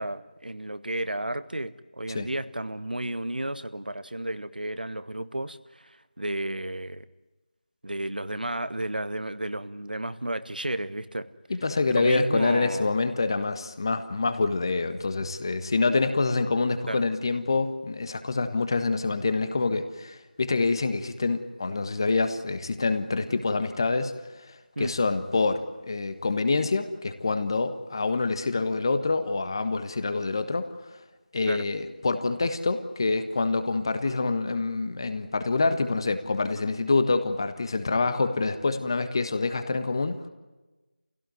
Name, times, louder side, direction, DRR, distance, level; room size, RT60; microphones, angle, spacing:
voice 1, 0.0-7.0 7.8-11.3 11.9-12.9 16.9-17.0 24.8-24.9 31.5-31.6, right 1 dB, 70° right, 13 dB, 1.4 m, -32 dB
voice 2, 11.5-30.7 31.3-40.2, left 3 dB, 30° left, 10 dB, 1.4 m, -26 dB
27.0 x 17.0 x 9.5 m, 1.2 s
figure-of-eight pair, 170°, 5 cm